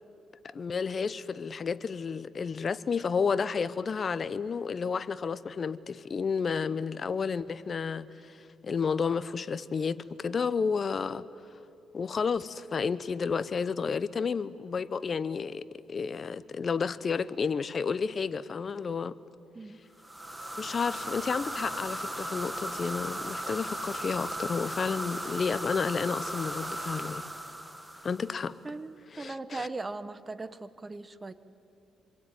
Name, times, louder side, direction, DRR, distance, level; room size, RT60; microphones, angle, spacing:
voice 1, 0.4-11.2 11.9-19.2 20.6-27.2 28.0-28.5 29.1-29.7, left 5 dB, 40° left, 0.9 m, -31 dB
sound 1, 20.0-28.5, right 1 dB, 5° right, 1.7 m, -37 dB
voice 2, 28.6-31.3, right 3 dB, 25° right, 1.1 m, -39 dB
26.5 x 22.0 x 9.4 m
cardioid pair, 90°, 0 cm